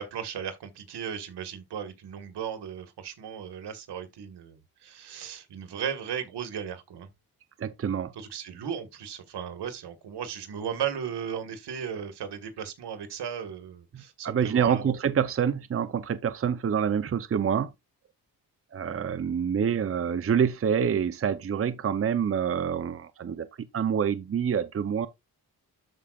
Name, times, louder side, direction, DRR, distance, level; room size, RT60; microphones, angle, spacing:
voice 1, 0.0-7.1 8.1-14.9, right 8 dB, 90° right, 1.7 m, -36 dB
voice 2, 7.6-8.1 13.9-17.7 18.7-23.5 23.7-25.1, right 7 dB, 35° right, 0.7 m, -27 dB
12.5 x 4.9 x 2.4 m
cardioid pair, 100°, 39 cm